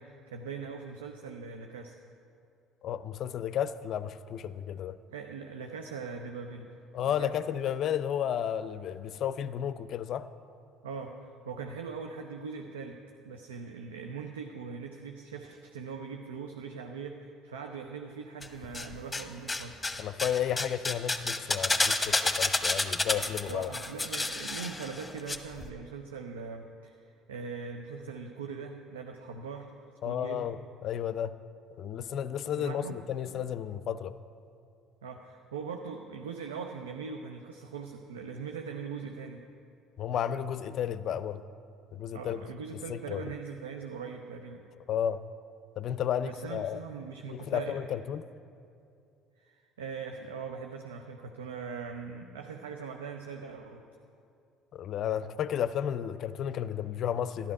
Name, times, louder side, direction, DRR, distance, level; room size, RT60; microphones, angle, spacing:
voice 1, 0.0-2.0 5.1-6.7 7.0-7.3 10.8-13.0 13.2-19.8 23.2-29.7 30.0-30.5 32.6-32.9 35.0-39.4 42.1-44.7 46.2-47.8 49.4-53.9, right 5 dB, 80° right, 4 dB, 0.6 m, -41 dB
voice 2, 2.8-5.0 6.9-10.3 20.0-23.7 30.0-31.4 31.8-34.1 40.0-41.4 41.9-42.4 42.7-43.2 44.9-45.2 45.8-46.8 47.3-48.2 54.7-57.5, left 9 dB, 55° left, 14 dB, 0.5 m, -32 dB
sound 1, 18.4-19.2 19.5-25.4 25.6-25.7, left 2 dB, 15° left, 1.0 m, -30 dB
13.0 x 12.0 x 4.8 m, 2.6 s
hypercardioid pair, 60°, 0 cm